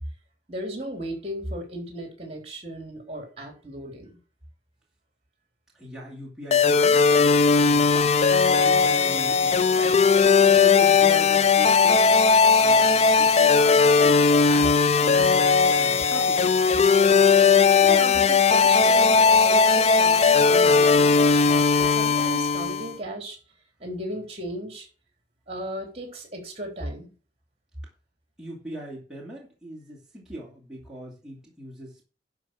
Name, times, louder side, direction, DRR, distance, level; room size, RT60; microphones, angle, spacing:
voice 1, 0.5-4.2 17.8-23.4 23.8-24.9 25.5-27.1, right 1 dB, 35° right, 3 dB, 3.7 m, -36 dB
voice 2, 5.7-8.2 8.6-10.0 10.4-12.2 12.6-15.5 15.8-16.4 28.4-32.0, right 1 dB, 5° right, -5 dB, 2.6 m, -40 dB
sound 1, 6.5-22.9, left 5 dB, 35° left, 0.4 m, -18 dB
11.5 x 5.3 x 6.3 m, 0.36 s
head